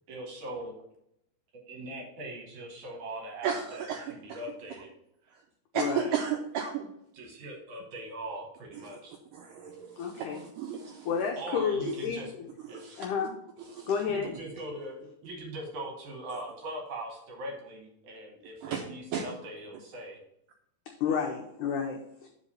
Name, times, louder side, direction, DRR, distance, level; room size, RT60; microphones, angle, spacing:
voice 1, 0.1-0.8 1.7-4.9 5.9-6.2 7.1-9.2 11.4-12.3 12.6-12.8 14.1-20.2, right 1 dB, 65° right, 1 dB, 2.1 m, -41 dB
voice 2, 3.4-4.4 5.7-6.9 9.3-11.1 12.7-13.1 13.7-13.9 16.3-16.4 18.6-18.8 19.1-19.3, right 7 dB, 85° right, 3 dB, 1.9 m, -34 dB
voice 3, 5.7-6.1 10.0-10.4 11.0-12.2 13.0-13.3 13.9-14.3 21.0-22.3, left 6 dB, 85° left, 2 dB, 1.7 m, -30 dB
5.7 x 5.2 x 5.5 m, 0.77 s
omnidirectional pair, 4.5 m